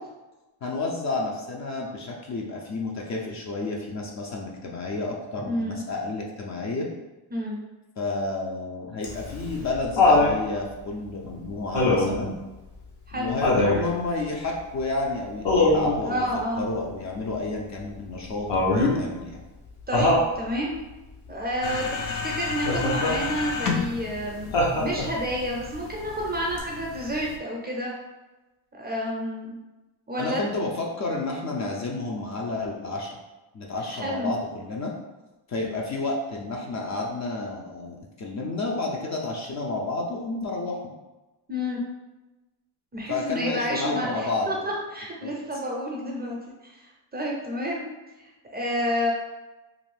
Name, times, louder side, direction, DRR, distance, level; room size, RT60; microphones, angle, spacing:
voice 1, 0.6-6.9 8.0-12.4 13.1-16.3 16.6-19.4 30.2-33.2 33.5-34.9 35.5-40.8 43.1-44.6 45.2-45.3, left 2 dB, 40° left, 0 dB, 0.4 m, -31 dB
voice 2, 5.4-5.8 7.3-7.6 13.1-13.3 16.0-16.6 19.9-20.7 21.3-24.5 24.8-27.9 28.7-29.6 30.1-30.4 33.9-34.3 41.5-41.8 42.9-44.6 44.9-46.4 46.6-46.8 47.1-47.9 48.2-49.1, equal, 20° right, -3 dB, 0.4 m, -29 dB
Laughter, 9.0-10.4 11.7-12.2 13.4-13.9 15.4-16.0 18.5-19.0 19.9-20.3 22.7-23.2 24.5-25.2 26.6-26.7, left 2 dB, 60° left, 0.8 m, -21 dB
sound 1, 21.6-27.4, left 5 dB, 90° left, 0.6 m, -33 dB
2.5 x 2.5 x 3.2 m, 1.1 s
cardioid pair, 130°, 46 cm